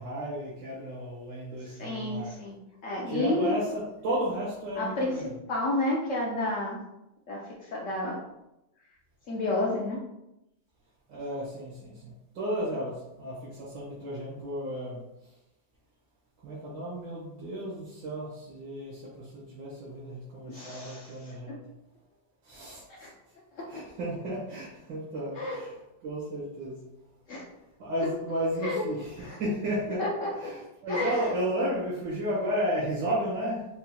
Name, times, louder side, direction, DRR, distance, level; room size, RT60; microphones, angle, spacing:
voice 1, 0.0-2.3 3.1-5.3 11.1-15.3 16.4-21.6 22.4-23.1 23.7-25.7 26.0-26.8 27.8-30.0 30.4-30.5 30.8-33.7, equal, 75° right, -8 dB, 1.7 m, -33 dB
voice 2, 1.6-2.6 2.8-3.6 4.7-6.8 7.3-8.2 9.3-10.0 20.5-21.6 22.9-23.1 23.5-23.8 25.3-25.6 27.3-27.5 28.6-28.8 29.2-29.4 30.0-30.5 30.9-31.4, left 2 dB, 75° left, -3 dB, 0.7 m, -31 dB
5.5 x 2.8 x 2.2 m, 0.89 s
omnidirectional pair, 2.0 m